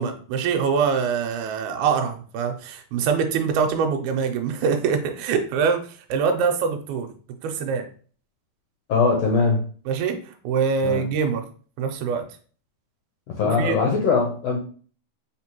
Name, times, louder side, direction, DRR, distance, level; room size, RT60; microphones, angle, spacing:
voice 1, 0.0-7.1 7.4-7.9 9.9-10.2 10.4-11.4 11.8-12.2 13.4-13.8, right 6 dB, 85° right, 5 dB, 2.1 m, -24 dB
voice 2, 8.9-9.6 10.8-11.0 13.3-14.6, left 4 dB, 75° left, 1 dB, 1.6 m, -21 dB
4.4 x 3.6 x 3.0 m, 0.42 s
omnidirectional pair, 3.6 m